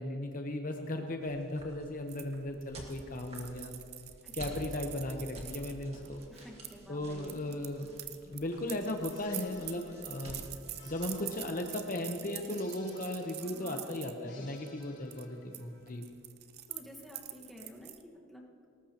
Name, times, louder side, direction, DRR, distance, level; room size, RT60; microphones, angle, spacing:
voice 1, 0.0-3.7 4.3-6.2 6.9-7.9 8.2-10.4 10.9-16.1, left 1 dB, 40° left, 4 dB, 0.9 m, -36 dB
sound 1, 1.2-11.2, right 1 dB, 30° right, 2.0 m, -51 dB
sound 2, 2.1-6.7 7.2-14.1 14.6-14.8 15.1-15.6 15.9-18.0, right 13 dB, 50° right, 0.6 m, -45 dB
voice 2, 6.3-7.6 13.4-14.5 16.7-18.6, equal, ahead, -2 dB, 1.5 m, -51 dB
sound 3, 9.1-16.0, left 4 dB, 60° left, 3.3 m, -58 dB
19.0 x 18.5 x 3.0 m, 2.3 s
head